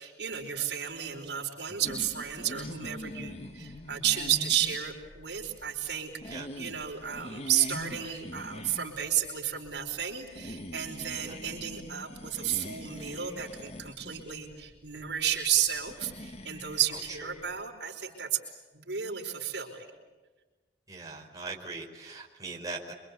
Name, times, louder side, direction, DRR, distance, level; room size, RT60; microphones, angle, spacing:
voice 1, 0.0-18.4 18.7-19.9, right 10 dB, 75° right, 2 dB, 4.9 m, -32 dB
sound 1, 1.8-17.6, left 1 dB, 40° left, 1.9 m, -44 dB
voice 2, 20.9-22.9, right 3 dB, 20° right, -1 dB, 4.8 m, -40 dB
27.5 x 25.0 x 8.5 m, 1.3 s
head